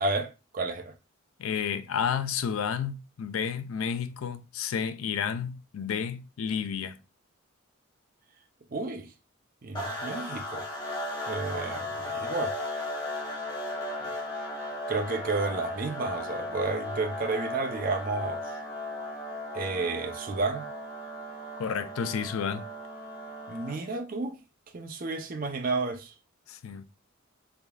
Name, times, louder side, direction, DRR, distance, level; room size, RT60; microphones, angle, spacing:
voice 1, 0.0-0.9 8.7-9.1 9.6-10.7 11.3-12.6 14.9-18.5 19.5-20.7 23.5-24.4 24.7-26.1, right 3 dB, 45° right, 0.5 m, -31 dB
voice 2, 1.4-7.0 21.6-22.6 26.5-26.8, left 7 dB, 80° left, 0.4 m, -31 dB
sound 1, 9.7-23.9, left 1 dB, 20° left, 1.0 m, -36 dB
3.5 x 3.4 x 2.2 m
head